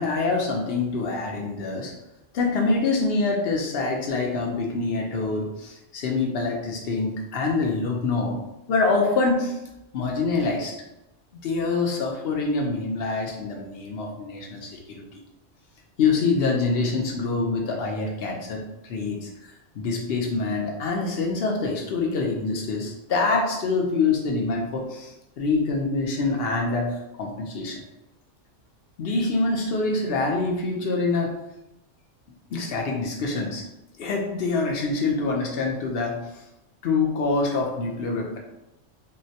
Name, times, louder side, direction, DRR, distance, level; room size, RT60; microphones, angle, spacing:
voice 1, 0.0-1.9 2.3-8.4 8.7-9.6 9.9-10.7 11.3-15.0 16.0-19.3 19.7-26.9 27.2-27.8 29.0-31.3 32.5-33.6 34.0-36.2 36.8-38.4, left 3 dB, 60° left, 0 dB, 0.8 m, -25 dB
3.8 x 2.1 x 2.7 m, 0.91 s
omnidirectional pair, 1.3 m